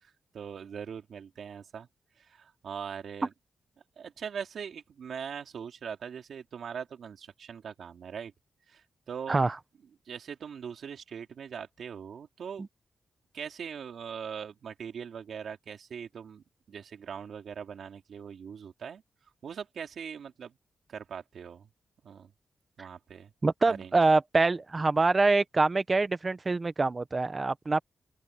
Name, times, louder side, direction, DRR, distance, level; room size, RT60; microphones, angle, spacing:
voice 1, 0.0-1.9 2.2-3.3 4.0-8.3 8.7-9.5 10.1-12.7 13.3-19.0 19.4-20.5 20.9-21.7 22.0-22.3 22.8-23.3 23.7-24.0, right 7 dB, 60° right, 3.2 m, -41 dB
voice 2, 23.4-27.8, right 3 dB, 25° right, 0.9 m, -25 dB
open air
wide cardioid pair, 165°, 0 cm